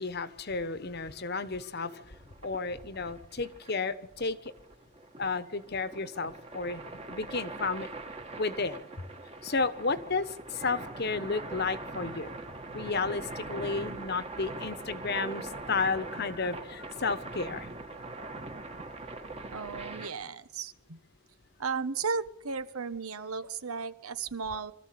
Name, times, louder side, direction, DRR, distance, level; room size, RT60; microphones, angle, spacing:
voice 1, 0.0-2.0 2.4-4.4 5.2-6.8 7.1-7.9 8.4-8.8 9.4-12.3 12.7-17.7, left 4 dB, 45° left, 13 dB, 1.1 m, -32 dB
sound 1, 1.8-20.1, right 2 dB, 25° right, 1.8 m, -42 dB
voice 2, 19.5-21.0 21.6-24.7, right 5 dB, 80° right, 13 dB, 1.2 m, -35 dB
24.5 x 14.0 x 8.6 m, 0.79 s
head